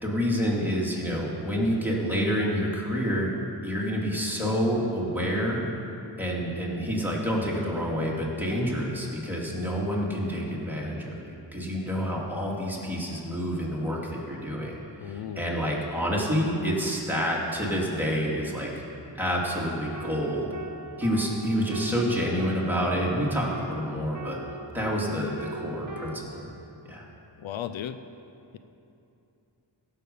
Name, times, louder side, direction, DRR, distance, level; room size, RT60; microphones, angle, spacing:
voice 1, 0.0-3.3 3.6-5.6 6.2-14.8 15.0-18.7 19.2-20.5 21.0-24.4 24.7-26.5 26.9-27.0, equal, 5° right, -5 dB, 2.6 m, -28 dB
voice 2, 15.0-15.6 27.4-28.0, left 10 dB, 85° left, 11 dB, 0.6 m, -35 dB
sound 1, 19.4-26.2, right 2 dB, 40° right, 1.0 m, -41 dB
16.5 x 7.0 x 5.5 m, 2.8 s
wide cardioid pair, 75°, 46 cm